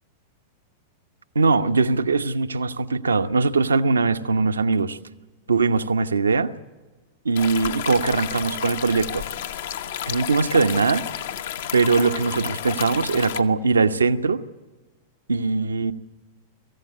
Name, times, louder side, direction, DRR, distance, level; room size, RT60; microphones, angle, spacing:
voice 1, 1.3-5.0 5.5-6.5 7.2-9.3 10.1-11.0 11.7-14.4 15.3-15.9, right 4 dB, 85° right, 10 dB, 0.9 m, -21 dB
sound 1, 7.4-13.4, left 10 dB, 65° left, 1.2 m, -31 dB
25.5 x 15.5 x 8.5 m, 1.3 s
figure-of-eight pair, 95°, 0 cm